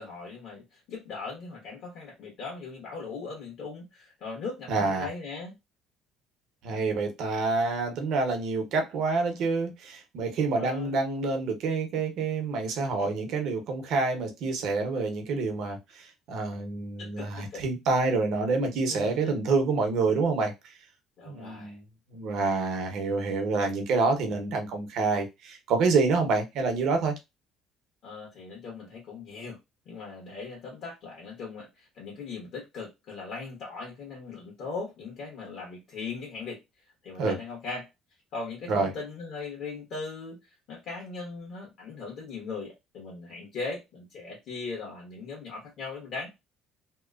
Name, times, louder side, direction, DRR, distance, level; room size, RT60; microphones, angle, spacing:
voice 1, 0.0-5.6 10.5-10.9 17.0-17.6 18.9-19.3 21.2-21.8 28.0-29.6 29.8-36.6 37.0-37.9 38.3-46.3, left 4 dB, 55° left, 1.1 m, -39 dB
voice 2, 4.7-5.1 6.6-20.5 21.3-21.8 22.1-27.1 37.2-37.4 38.7-38.9, right 4 dB, 60° right, 0.8 m, -27 dB
2.9 x 2.1 x 2.4 m
cardioid pair, 155°, 0 cm